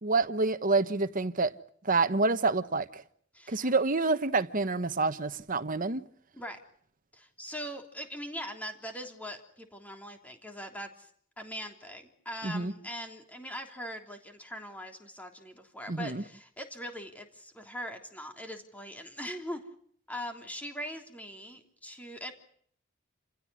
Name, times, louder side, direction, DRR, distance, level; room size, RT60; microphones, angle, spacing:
voice 1, 0.0-1.5 1.8-3.0 3.5-6.0 12.4-12.7 15.9-16.2, right 3 dB, 45° right, 1.2 m, -27 dB
voice 2, 3.3-3.7 6.3-6.6 7.1-11.1 11.4-19.7 20.1-22.3, equal, 10° left, 3.3 m, -41 dB
29.0 x 16.5 x 9.9 m
head